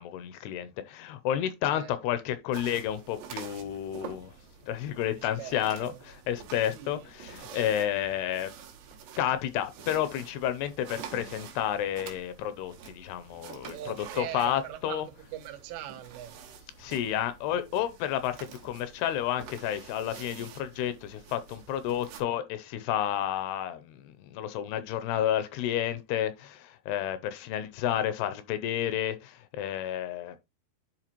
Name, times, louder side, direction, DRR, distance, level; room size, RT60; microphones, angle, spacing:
voice 1, 0.0-4.4 4.6-8.5 9.2-15.1 16.8-30.4, left 11 dB, 80° left, 2.5 m, -31 dB
sound 1, 2.5-22.2, right 7 dB, 65° right, 2.7 m, -48 dB
voice 2, 5.4-6.0 6.7-7.1 13.7-15.0 15.3-16.3, right 12 dB, 90° right, 3.2 m, -41 dB
11.0 x 4.5 x 2.9 m
omnidirectional pair, 4.9 m